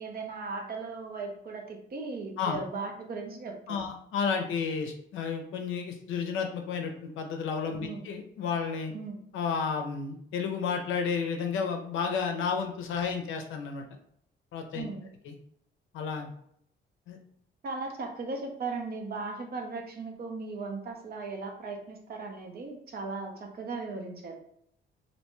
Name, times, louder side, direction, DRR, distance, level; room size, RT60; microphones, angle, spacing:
voice 1, 0.0-3.9 7.8-8.1 8.9-9.2 14.7-15.1 17.6-24.4, right 3 dB, 50° right, 3 dB, 0.6 m, -37 dB
voice 2, 3.7-8.9 9.3-13.8 14.5-14.9 15.2-15.3 15.9-16.3 17.1-17.2, left 6 dB, 80° left, 4 dB, 0.5 m, -32 dB
2.6 x 2.2 x 2.9 m, 0.69 s
cardioid pair, 90°, 20 cm